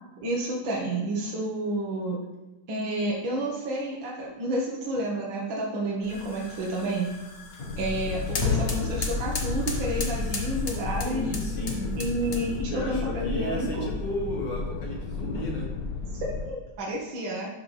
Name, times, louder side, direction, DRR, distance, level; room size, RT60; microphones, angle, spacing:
voice 1, 0.2-2.2 2.7-7.1 7.8-11.2 12.0-13.9 16.1-17.5, right 1 dB, 70° right, -4 dB, 1.9 m, -30 dB
sound 1, 6.0-12.7, left 4 dB, 45° left, 0.8 m, -34 dB
sound 2, 7.7-16.5, left 4 dB, 85° left, 0.8 m, -33 dB
voice 2, 11.0-12.1 12.7-15.7, left 1 dB, 65° left, -1 dB, 1.8 m, -34 dB
11.5 x 5.4 x 3.3 m, 1.1 s
omnidirectional pair, 2.2 m